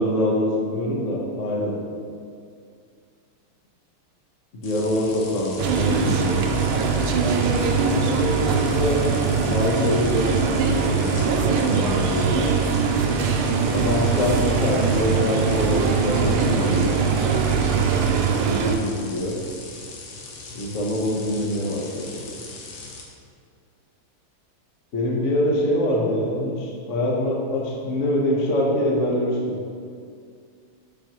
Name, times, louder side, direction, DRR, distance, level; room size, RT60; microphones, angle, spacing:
voice 1, 0.0-1.8 4.6-6.4 8.0-9.0 9.4-10.2 10.7-12.5 13.7-17.0 18.4-19.4 20.5-22.1 24.9-29.5, left 1 dB, 50° left, -2 dB, 0.9 m, -24 dB
sound 1, 4.6-23.0, left 3 dB, 85° left, 1.8 m, -40 dB
sound 2, 5.6-18.8, right 5 dB, 85° right, 1.5 m, -22 dB
8.9 x 5.3 x 2.9 m, 2.3 s
omnidirectional pair, 2.4 m